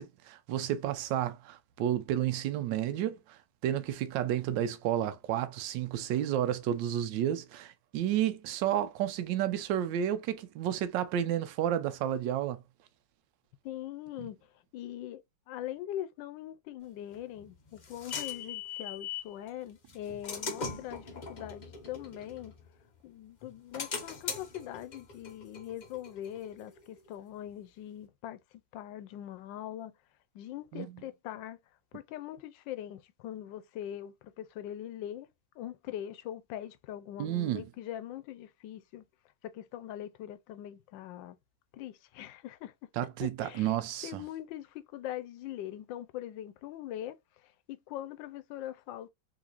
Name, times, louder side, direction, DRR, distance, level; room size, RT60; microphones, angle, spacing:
voice 1, 0.0-3.2 3.6-12.6 30.7-30.9 37.2-37.6 43.0-44.2, right 11 dB, 85° right, 1.3 m, -31 dB
voice 2, 13.6-14.4 14.7-22.5 23.0-28.4 28.7-29.9 30.3-31.6 31.9-35.3 35.6-39.0 39.5-41.4 41.7-42.7 43.2-43.8 44.0-49.1, left 12 dB, 90° left, 1.3 m, -42 dB
sound 1, 17.1-19.3 19.9-23.0 23.4-26.8, left 5 dB, 60° left, 0.4 m, -41 dB
3.9 x 3.0 x 2.4 m
omnidirectional pair, 1.9 m